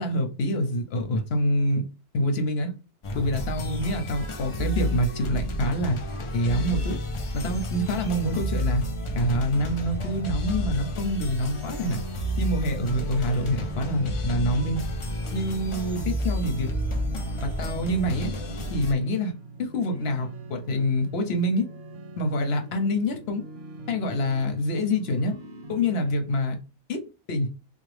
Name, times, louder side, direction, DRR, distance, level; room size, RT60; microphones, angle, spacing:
voice 1, 0.0-1.8 2.1-2.7 3.1-6.0 6.3-7.0 7.3-8.8 9.2-12.0 12.4-14.8 15.3-16.7 17.4-18.3 18.7-19.3 19.6-21.7 22.2-23.4 23.9-25.4 25.7-26.6 26.9-27.5, left 1 dB, 70° left, 1.0 m, -26 dB
sound 1, 3.0-18.9, equal, 40° left, 0.5 m, -31 dB
sound 2, 11.3-26.1, right 3 dB, 70° right, 0.8 m, -43 dB
3.5 x 2.3 x 3.3 m
omnidirectional pair, 1.1 m